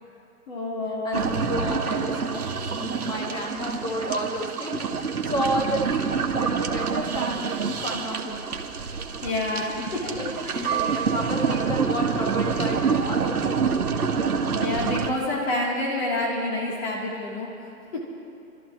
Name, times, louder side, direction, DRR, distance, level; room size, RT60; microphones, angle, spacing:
voice 1, 0.5-2.0 9.2-10.7 14.6-18.0, left 2 dB, 45° left, -3 dB, 3.3 m, -29 dB
voice 2, 1.0-1.8 2.0-8.5 9.8-10.2 10.5-12.8 13.1-13.8, equal, 10° left, 0 dB, 1.3 m, -32 dB
sound 1, 1.1-15.1, right 5 dB, 85° right, 1.5 m, -27 dB
sound 2, 10.6-11.9, right 9 dB, 25° right, 1.8 m, -31 dB
29.5 x 13.0 x 3.1 m, 2.7 s
hypercardioid pair, 150°, 43 cm